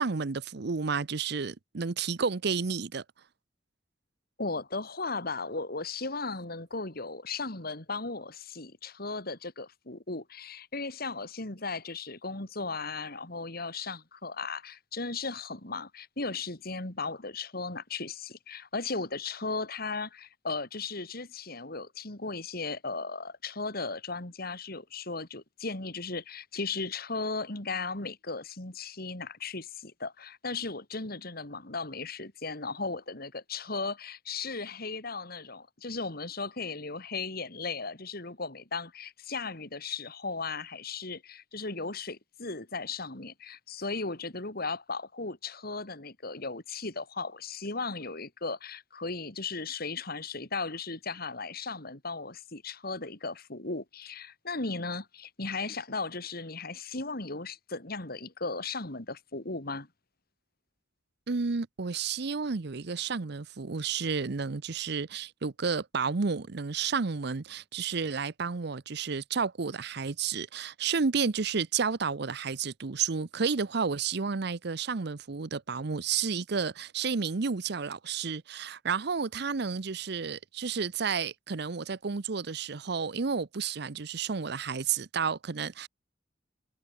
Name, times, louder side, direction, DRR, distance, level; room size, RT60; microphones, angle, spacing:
voice 1, 0.0-3.0 61.3-85.9, right 5 dB, 65° right, 0.7 m, -31 dB
voice 2, 4.4-59.9, left 3 dB, 55° left, 3.3 m, -36 dB
head